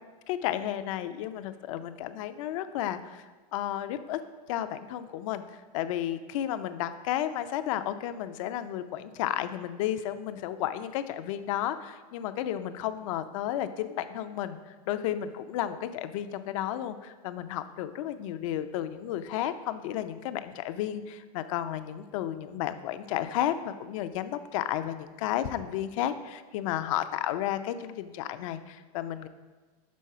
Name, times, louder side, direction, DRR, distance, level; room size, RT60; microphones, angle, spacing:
voice 1, 0.3-3.2 3.5-4.2 4.5-5.4 5.7-29.3, left 11 dB, 55° left, 11 dB, 0.5 m, -32 dB
6.3 x 3.9 x 5.6 m, 1.4 s
supercardioid pair, 130°, 20 cm